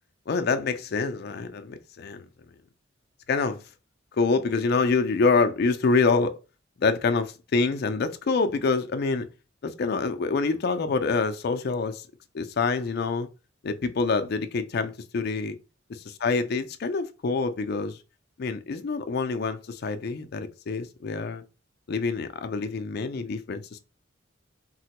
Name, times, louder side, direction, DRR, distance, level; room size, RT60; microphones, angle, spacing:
voice 1, 0.3-2.3 3.3-3.6 4.2-6.3 6.8-9.3 9.6-12.1 12.3-13.3 13.6-15.5 16.2-18.0 18.4-21.4 21.9-23.8, left 4 dB, 55° left, 0.4 m, -26 dB
3.8 x 2.1 x 2.8 m
head